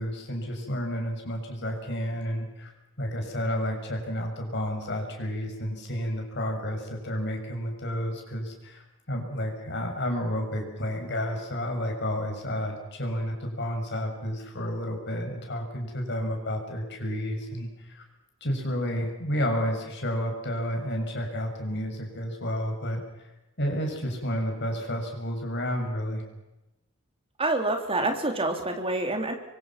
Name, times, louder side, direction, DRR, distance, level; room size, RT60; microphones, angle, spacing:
voice 1, 0.0-2.7 3.0-18.0 18.4-23.0 23.6-26.2, equal, 55° left, 3 dB, 6.8 m, -31 dB
voice 2, 27.4-29.3, right 2 dB, 25° right, 3 dB, 3.7 m, -27 dB
25.5 x 24.0 x 6.1 m, 0.99 s
head